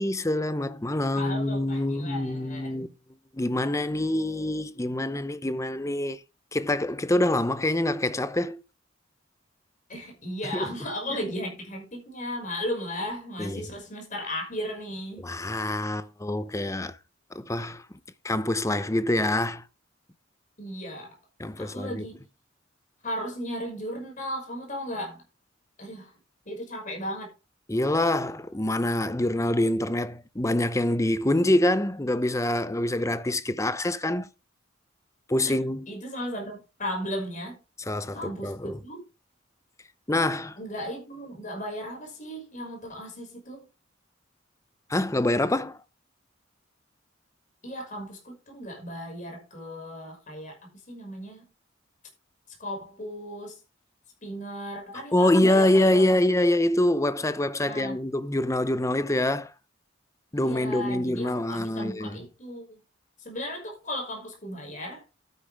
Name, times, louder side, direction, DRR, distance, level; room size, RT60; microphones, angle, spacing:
voice 1, 0.0-2.9 3.3-6.2 6.5-8.6 10.5-10.7 13.4-13.6 15.2-17.0 17.3-17.8 18.2-19.6 21.4-22.0 27.7-34.3 35.3-35.9 37.9-38.7 40.1-40.6 44.9-45.8 55.1-59.5 60.3-62.2, left 1 dB, 15° left, 0.7 m, -25 dB
voice 2, 1.1-2.9 9.9-15.3 20.6-21.2 21.6-22.2 23.0-25.2 25.8-26.2 26.5-27.3 35.4-35.5 35.9-37.6 38.1-39.0 40.6-43.6 47.6-51.5 52.6-53.6 54.2-56.2 57.6-58.0 60.3-62.8 63.2-65.0, equal, 40° left, 5.7 m, -36 dB
12.5 x 9.9 x 3.5 m
head